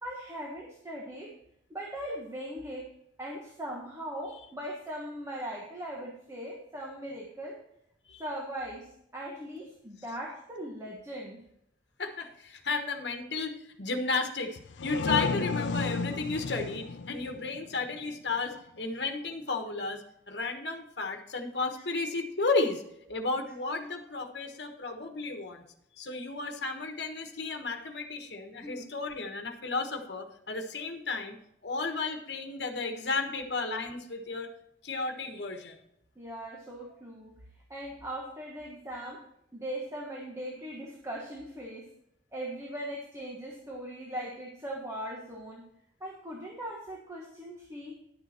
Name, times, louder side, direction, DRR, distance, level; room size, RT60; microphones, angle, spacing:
voice 1, 0.0-1.3 1.7-2.9 3.2-7.6 8.2-11.4 28.6-28.9 36.2-37.3 37.7-39.2 39.5-41.9 42.3-45.6 46.0-48.0, right 1 dB, 15° right, -2 dB, 1.4 m, -39 dB
voice 2, 12.0-22.8 23.1-25.6 26.0-31.4 31.6-34.5 34.8-35.7, left 3 dB, 65° left, 4 dB, 1.3 m, -33 dB
sound 1, 14.6-18.2, left 4 dB, 85° left, 0.6 m, -33 dB
10.5 x 7.0 x 4.3 m, 0.78 s
head